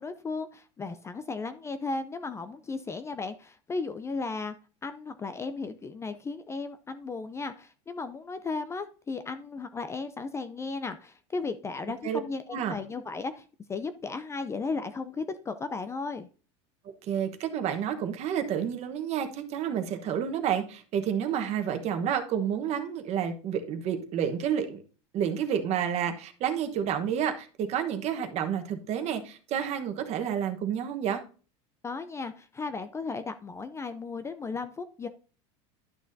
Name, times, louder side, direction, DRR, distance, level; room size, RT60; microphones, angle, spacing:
voice 1, 0.0-4.6 4.8-16.3 31.8-35.1, left 4 dB, 15° left, 11 dB, 0.4 m, -35 dB
voice 2, 16.8-24.8 25.1-31.2, right 8 dB, 45° right, 7 dB, 1.1 m, -30 dB
11.5 x 6.2 x 2.6 m, 0.38 s
supercardioid pair, 120°, 16 cm